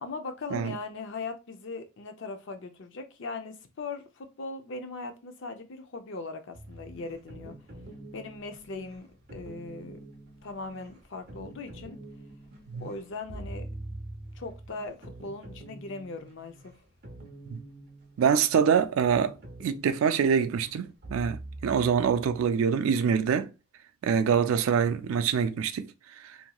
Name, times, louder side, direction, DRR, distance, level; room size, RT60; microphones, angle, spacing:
voice 1, 0.0-7.5 8.1-10.0 10.4-12.0 12.8-13.7 14.3-16.7, left 3 dB, 60° left, 0.5 m, -39 dB
sound 1, 6.5-22.7, right 1 dB, 50° right, 0.7 m, -45 dB
voice 2, 18.2-19.3 19.6-23.5 24.0-25.9, right 7 dB, 80° right, 0.3 m, -25 dB
2.9 x 2.6 x 2.2 m
head